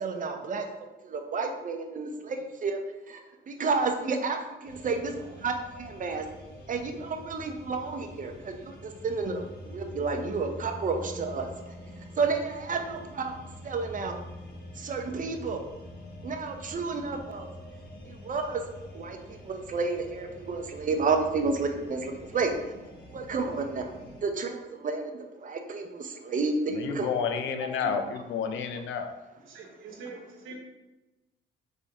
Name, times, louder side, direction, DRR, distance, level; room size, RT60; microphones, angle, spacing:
voice 1, 0.0-2.8 3.1-3.2 3.5-5.1 5.4-6.2 6.7-11.5 12.2-13.3 13.6-14.2 14.8-15.6 16.2-17.5 18.1-18.6 18.9-22.5 23.1-23.9 24.2-27.2 27.6-27.9, right 4 dB, 40° right, 5 dB, 0.7 m, -31 dB
sound 1, 4.6-24.2, left 1 dB, 50° left, 1.3 m, -46 dB
voice 2, 26.7-29.1, left 6 dB, 75° left, 6 dB, 0.6 m, -30 dB
voice 3, 29.4-30.6, right 4 dB, 85° right, 0 dB, 1.1 m, -44 dB
4.2 x 3.4 x 3.5 m, 1.0 s
cardioid pair, 90°, 20 cm